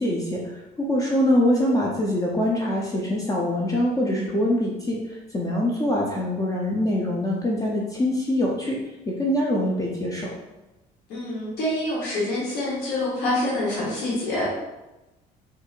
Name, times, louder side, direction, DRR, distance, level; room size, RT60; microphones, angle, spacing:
voice 1, 0.0-8.8 9.1-10.3, left 1 dB, 20° left, -3 dB, 0.5 m, -24 dB
voice 2, 11.1-14.5, left 1 dB, 85° left, -7 dB, 1.0 m, -26 dB
4.2 x 2.6 x 2.4 m, 1.0 s
cardioid pair, 110°, 17 cm